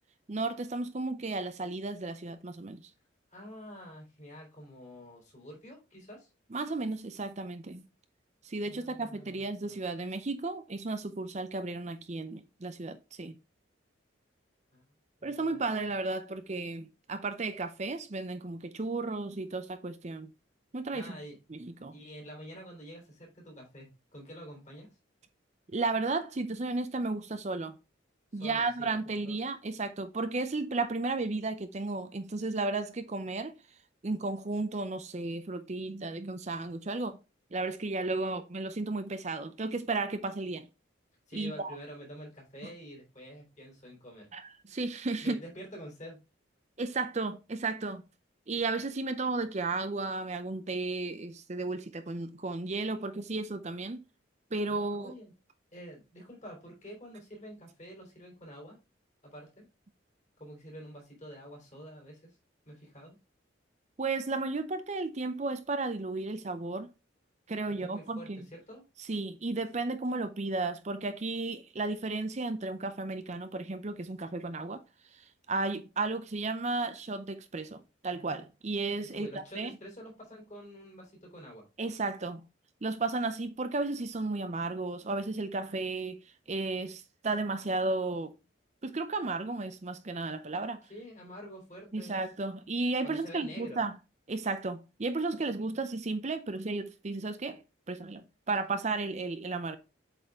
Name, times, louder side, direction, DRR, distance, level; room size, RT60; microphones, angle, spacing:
voice 1, 0.3-2.8 6.5-7.9 8.4-13.3 15.2-20.3 20.7-21.2 21.5-22.0 25.7-27.7 28.3-33.5 34.0-37.2 37.5-40.7 41.3-41.8 44.3-45.4 46.8-48.0 48.5-54.0 54.5-55.1 64.0-66.9 67.5-68.5 69.0-74.8 75.1-79.3 79.5-79.8 81.8-82.4 82.8-88.3 88.8-90.8 91.9-94.0 94.3-97.6 97.9-99.8, right 3 dB, 35° right, 0.6 m, -34 dB
voice 2, 3.3-6.3 8.6-9.9 14.7-14.8 15.2-15.8 20.9-21.4 21.9-24.9 28.3-29.4 41.3-44.3 45.2-46.2 54.7-55.3 55.7-58.8 59.2-59.6 60.4-62.3 62.6-63.2 67.8-68.8 79.1-81.6 90.9-92.2 93.0-93.8, equal, 40° left, 3.5 m, -47 dB
7.9 x 4.2 x 3.6 m
head